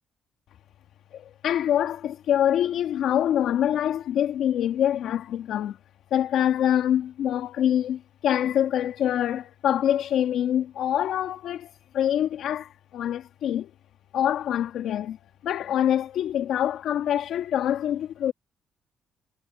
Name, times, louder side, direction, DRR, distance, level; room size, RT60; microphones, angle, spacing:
voice 1, 1.1-5.8 6.1-13.7 14.1-15.2 15.4-18.3, left 10 dB, 75° left, 2.2 m, -25 dB
cardioid pair, 90°, 0 cm